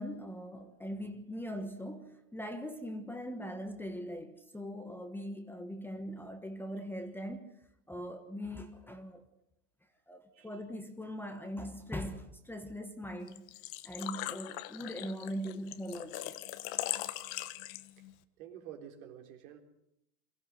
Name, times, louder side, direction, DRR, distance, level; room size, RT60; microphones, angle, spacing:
voice 1, 0.0-7.5 7.9-9.2 10.1-13.4 13.8-16.4, equal, 5° left, 1.3 m, -41 dB
Engine / Trickle dribble / Fill (with liquid), 13.3-18.1, left 16 dB, 50° left, 1.3 m, -40 dB
voice 2, 18.4-19.6, right 9 dB, 60° right, 4.0 m, -50 dB
23.0 x 15.0 x 8.0 m
hypercardioid pair, 125°, 47 cm